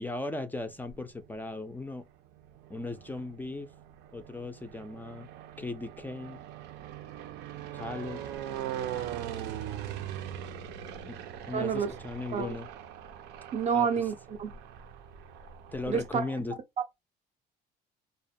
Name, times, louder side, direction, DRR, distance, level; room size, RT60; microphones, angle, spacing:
voice 1, 0.0-2.1 2.7-3.7 4.1-5.3 5.6-6.4 7.7-8.2 11.1-11.2 11.5-12.7 13.7-14.1 15.7-16.6, left 2 dB, 10° left, 0.3 m, -37 dB
sound 1, 0.6-1.3 2.1-16.1, right 10 dB, 90° right, 0.5 m, -41 dB
voice 2, 11.5-11.9 12.3-12.5 13.5-14.5 15.9-16.2, right 6 dB, 40° right, 0.6 m, -28 dB
2.4 x 2.1 x 2.6 m
cardioid pair, 110°, 17 cm